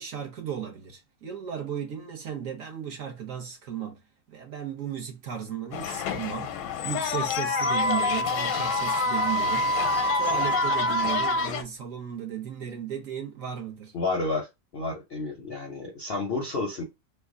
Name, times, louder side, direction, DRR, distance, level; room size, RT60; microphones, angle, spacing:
voice 1, 0.0-4.0 4.3-6.6 6.8-9.7 10.1-13.9, right 8 dB, 60° right, 1.1 m, -35 dB
sound 1, 5.7-11.6, left 9 dB, 85° left, 1.2 m, -30 dB
Wind instrument woodwind instrument, 7.5-11.5, right 1 dB, 90° right, 1.2 m, -27 dB
voice 2, 13.9-14.5 14.7-16.8, left 3 dB, 60° left, 0.6 m, -30 dB
3.4 x 2.2 x 3.5 m
omnidirectional pair, 1.8 m